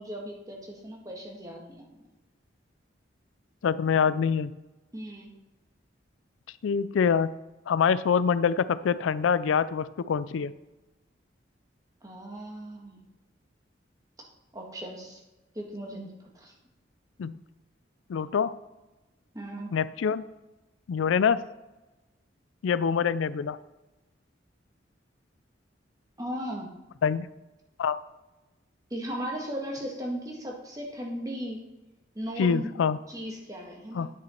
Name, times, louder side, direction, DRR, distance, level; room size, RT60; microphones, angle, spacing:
voice 1, 0.0-2.1 4.9-5.3 12.0-13.0 14.5-15.2 15.5-16.5 19.3-19.7 26.2-26.7 28.9-31.6 32.1-32.7 33.1-34.1, equal, 20° right, 0 dB, 1.4 m, -37 dB
voice 2, 3.6-4.5 6.6-7.3 7.7-10.5 17.2-17.4 18.1-18.6 19.7-20.2 20.9-21.4 22.6-23.6 27.0-27.3 27.8-28.0 32.4-33.0 33.9-34.1, left 6 dB, 85° left, 16 dB, 0.4 m, -25 dB
9.8 x 6.1 x 4.4 m, 1.0 s
head